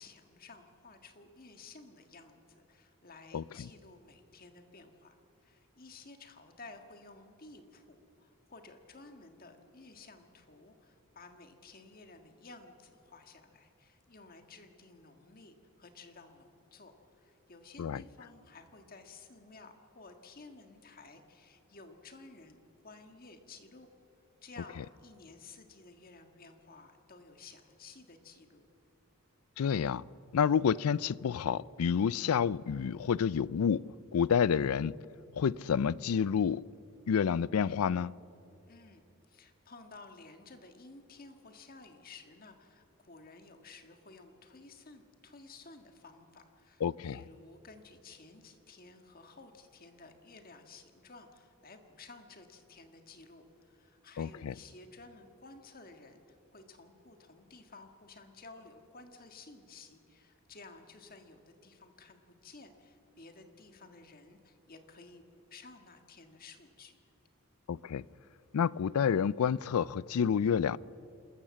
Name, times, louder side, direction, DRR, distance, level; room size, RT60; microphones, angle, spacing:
voice 1, 0.0-22.6 22.8-23.9 24.4-28.7 38.7-67.0, left 3 dB, 45° left, 1.6 m, -54 dB
voice 2, 29.6-30.0 30.3-33.9 34.1-35.0 35.4-36.6 37.1-38.1 46.8-47.2 54.2-54.5 67.7-68.0 68.5-70.8, left 7 dB, 85° left, 0.4 m, -29 dB
27.5 x 13.5 x 7.5 m
head